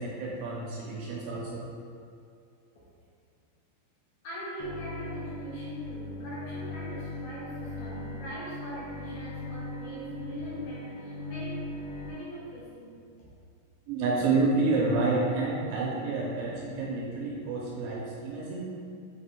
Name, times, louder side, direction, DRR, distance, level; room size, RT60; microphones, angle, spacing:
voice 1, 0.0-1.7 13.9-18.6, right 3 dB, 80° right, -3 dB, 2.7 m, -29 dB
voice 2, 4.2-12.9, equal, 65° left, -9 dB, 2.2 m, -42 dB
Bowed string instrument, 4.6-12.1, left 2 dB, 90° left, 3.6 m, -39 dB
8.1 x 4.6 x 3.6 m, 2.4 s
omnidirectional pair, 5.7 m